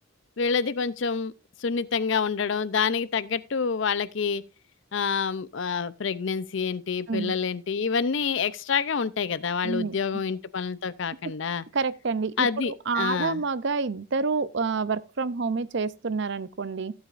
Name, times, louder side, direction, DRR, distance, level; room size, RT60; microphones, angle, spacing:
voice 1, 0.4-1.3 1.6-4.4 4.9-11.6 12.4-13.4, left 5 dB, 60° left, 0.5 m, -27 dB
voice 2, 9.6-9.9 11.7-16.9, right 4 dB, 55° right, 0.5 m, -28 dB
15.5 x 8.1 x 2.5 m
head